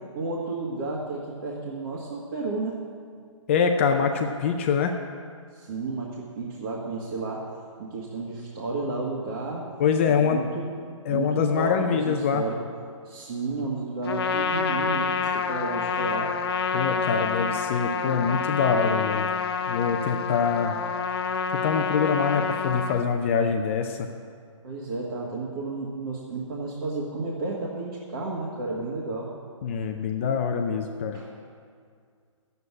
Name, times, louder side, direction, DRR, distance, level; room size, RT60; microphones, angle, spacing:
voice 1, 0.2-2.8 5.5-7.5 7.8-9.7 10.1-10.7 11.1-12.6 13.0-16.3 24.6-29.3 30.5-30.6 31.1-31.3, right 3 dB, 45° right, -5 dB, 1.8 m, -32 dB
voice 2, 3.5-4.9 9.8-10.4 11.1-12.4 16.7-19.3 19.7-20.8 21.5-24.1 29.6-31.2, left 6 dB, 25° left, 4 dB, 0.5 m, -24 dB
Trumpet, 14.0-23.1, left 5 dB, 50° left, 0.8 m, -28 dB
9.7 x 8.1 x 9.6 m, 2.1 s
hypercardioid pair, 165°, 17 cm